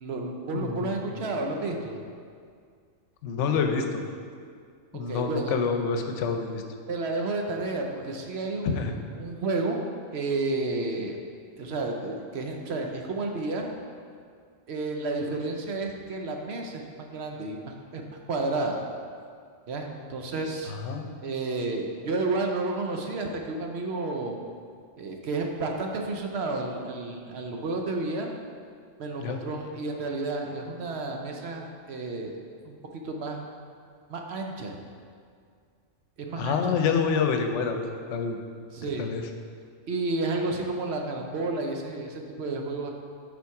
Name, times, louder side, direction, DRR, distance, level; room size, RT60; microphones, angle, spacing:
voice 1, 0.0-2.0 4.9-5.6 6.9-9.8 10.1-11.2 11.6-13.7 14.7-18.8 19.7-20.7 21.2-24.4 25.0-28.3 29.0-32.4 32.6-33.5 34.1-34.8 36.2-36.8 38.7-39.1 39.9-42.9, right 3 dB, 60° right, 2 dB, 0.9 m, -31 dB
voice 2, 0.5-1.1 3.2-4.0 4.9-6.6 8.6-8.9 20.7-21.1 29.2-29.4 36.4-37.8 38.1-38.4 39.0-39.2, left 5 dB, 70° left, 5 dB, 0.9 m, -27 dB
7.0 x 4.4 x 4.7 m, 2.2 s
omnidirectional pair, 1.3 m